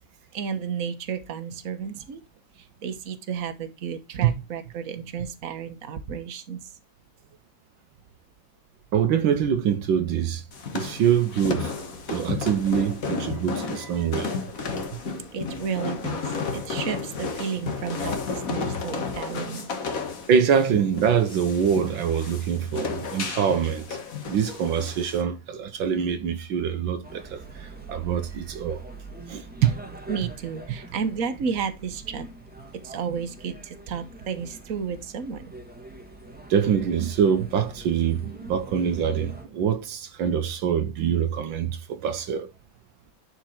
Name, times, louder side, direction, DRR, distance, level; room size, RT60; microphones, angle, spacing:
voice 1, 0.3-2.2 2.6-6.7 13.6-14.1 15.3-16.3 16.5-19.7 30.1-32.2 32.8-35.5, right 6 dB, 50° right, 1.5 m, -32 dB
voice 2, 8.9-10.4 10.7-11.7 12.1-14.3 20.3-24.0 24.3-28.8 29.3-29.8 36.5-42.5, right 8 dB, 80° right, 1.7 m, -24 dB
sound 1, 10.5-25.2, left 4 dB, 50° left, 1.7 m, -33 dB
sound 2, 27.0-39.5, right 2 dB, 5° right, 1.3 m, -44 dB
11.0 x 4.5 x 4.4 m
omnidirectional pair, 2.1 m